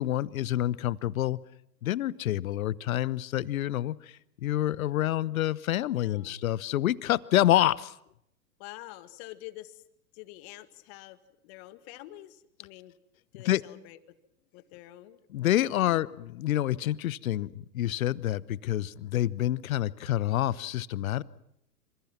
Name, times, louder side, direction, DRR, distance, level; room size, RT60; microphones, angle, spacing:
voice 1, 0.0-1.4 1.8-3.9 4.4-7.9 13.4-13.6 15.3-21.2, left 13 dB, 60° left, 20 dB, 1.0 m, -27 dB
voice 2, 5.9-6.4 8.6-9.8 10.1-11.2 11.4-12.9 13.3-14.0 14.5-15.2 15.7-16.0, left 16 dB, 40° left, 12 dB, 2.0 m, -47 dB
27.5 x 27.0 x 5.9 m, 0.75 s
figure-of-eight pair, 105°, 47 cm